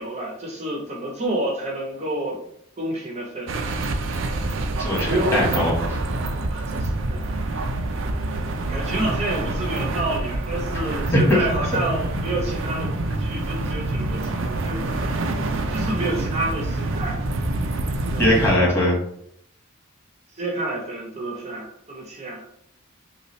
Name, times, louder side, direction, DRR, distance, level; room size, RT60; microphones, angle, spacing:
voice 1, 0.0-2.4 2.8-3.9 5.1-5.6 6.5-7.5 8.1-8.2 8.7-15.0 15.7-17.2 18.1-18.3 20.3-22.4, right 1 dB, 30° right, -1 dB, 0.8 m, -29 dB
sound 1, 3.5-18.6, right 2 dB, 60° right, 0.5 m, -26 dB
voice 2, 4.8-6.0 11.1-11.4 18.2-19.0, left 1 dB, 10° left, -5 dB, 1.6 m, -20 dB
5.4 x 2.4 x 3.1 m, 0.71 s
head